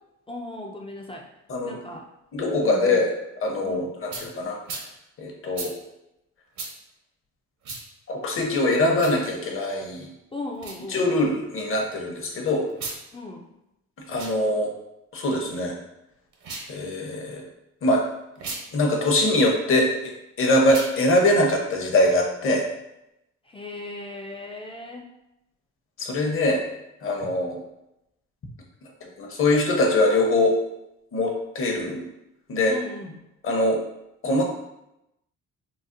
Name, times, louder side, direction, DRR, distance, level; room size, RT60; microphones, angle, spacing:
voice 1, 0.3-1.3 1.6-2.1 2.6-3.0 3.6-3.9 10.3-11.1 13.1-13.5 23.4-25.1 32.7-33.2, left 2 dB, 20° left, 0 dB, 0.3 m, -37 dB
voice 2, 2.3-3.1 3.4-4.6 5.2-5.7 8.1-10.1 10.9-12.7 14.1-14.7 15.1-15.8 16.7-17.4 17.8-18.0 18.7-20.1 20.4-22.7 26.0-26.6 27.0-27.6 29.0-30.6 31.1-32.0 32.5-32.7 33.4-33.8 34.2-34.4, left 1 dB, 45° left, 1 dB, 0.8 m, -22 dB
sound 1, 4.1-4.3 4.7-4.9 5.5-5.7 6.6-6.7 7.6-7.8 8.9-9.2 10.6-10.8 12.7-13.0 14.1-14.4 16.3-16.7 18.4-18.6 20.6-21.0, right 3 dB, 65° right, 0.8 m, -35 dB
4.0 x 2.0 x 2.5 m, 0.87 s
cardioid pair, 90°, 30 cm